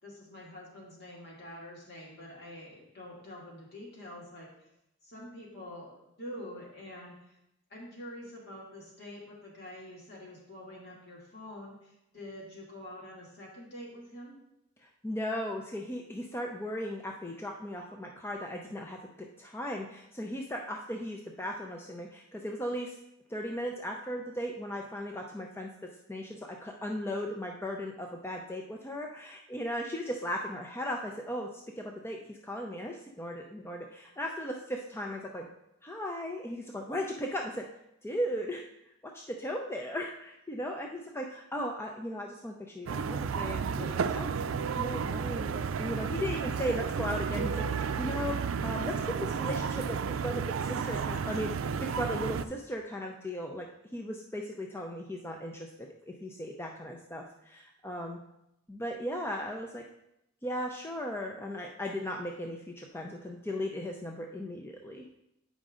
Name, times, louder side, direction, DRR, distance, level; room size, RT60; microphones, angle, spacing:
voice 1, 0.0-4.7 5.0-7.4 7.7-14.3, left 1 dB, 55° left, -3 dB, 2.4 m, -46 dB
voice 2, 14.8-23.0 23.3-25.7 26.1-35.5 35.8-37.6 38.0-38.6 39.1-44.4 44.7-50.0 50.2-51.6 52.0-53.7 53.9-58.2 58.7-59.8 60.4-65.1, equal, 10° left, 1 dB, 0.5 m, -37 dB
sound 1, 42.9-52.4, right 6 dB, 80° right, 0.4 m, -32 dB
8.7 x 5.2 x 3.7 m, 0.83 s
head